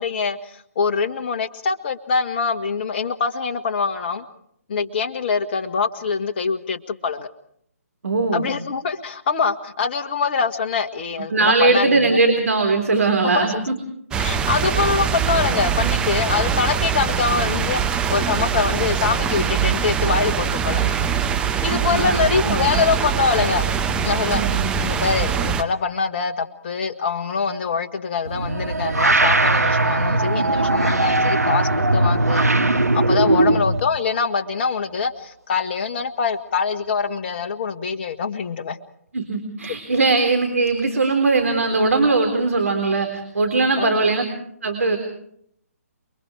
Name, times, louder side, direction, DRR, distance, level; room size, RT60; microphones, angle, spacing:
voice 1, 0.0-4.2 4.7-7.3 8.3-12.2 13.2-13.6 14.2-21.0 21.6-24.4 24.8-32.5 33.1-38.8 43.8-44.0, left 5 dB, 40° left, 6 dB, 1.8 m, -24 dB
voice 2, 8.0-8.4 11.3-13.7 14.5-14.7 21.7-22.8 24.3-24.8 33.2-33.7 39.1-44.2 44.6-45.0, right 3 dB, 65° right, 4 dB, 3.8 m, -20 dB
sound 1, 14.1-25.6, right 7 dB, 10° right, 0.9 m, -22 dB
sound 2, 28.2-33.8, right 2 dB, 85° right, 1.4 m, -19 dB
29.0 x 23.0 x 4.9 m, 0.71 s
figure-of-eight pair, 140°, 8 cm